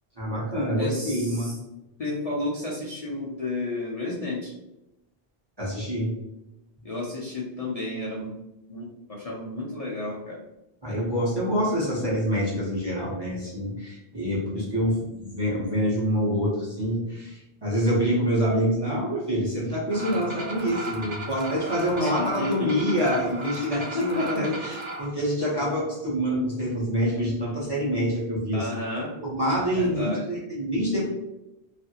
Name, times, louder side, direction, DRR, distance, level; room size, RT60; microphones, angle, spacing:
voice 1, 0.2-1.6 5.6-6.1 10.8-28.7 29.2-31.0, equal, 25° right, -7 dB, 0.8 m, -26 dB
voice 2, 0.7-1.6 2.0-4.5 6.8-8.4 8.7-10.4 22.0-22.7 23.6-24.5 28.5-29.1 29.7-30.3, left 2 dB, 45° left, -6 dB, 0.6 m, -32 dB
sound 1, 19.9-25.1, right 2 dB, 45° right, 0.4 m, -36 dB
2.8 x 2.5 x 2.8 m, 0.92 s
omnidirectional pair, 1.0 m